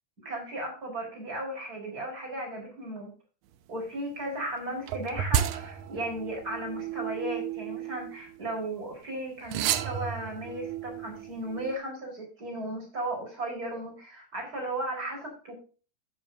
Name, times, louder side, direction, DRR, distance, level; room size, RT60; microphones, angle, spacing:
voice 1, 0.2-3.1 3.7-15.5, right 1 dB, 25° right, 0 dB, 5.1 m, -35 dB
sound 1, 4.9-8.7 9.4-11.8, right 10 dB, 90° right, 1.6 m, -33 dB
12.5 x 9.4 x 2.7 m, 0.37 s
omnidirectional pair, 4.3 m